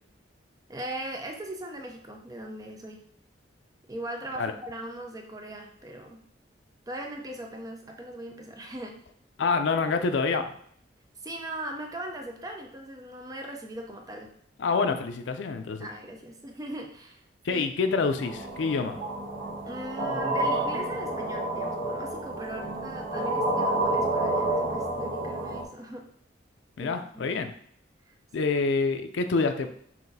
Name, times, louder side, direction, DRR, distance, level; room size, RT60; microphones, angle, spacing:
voice 1, 0.7-3.0 3.9-6.2 6.9-9.0 11.2-14.3 15.5-17.7 19.6-26.1 26.8-27.3 28.1-28.5, right 1 dB, 20° right, 2 dB, 0.4 m, -39 dB
voice 2, 9.4-10.5 14.6-15.9 17.4-19.0 26.8-27.5 28.3-29.7, left 4 dB, 75° left, 6 dB, 0.4 m, -27 dB
sound 1, 18.2-25.6, right 1 dB, 50° right, 1.0 m, -29 dB
5.7 x 2.5 x 2.6 m, 0.65 s
head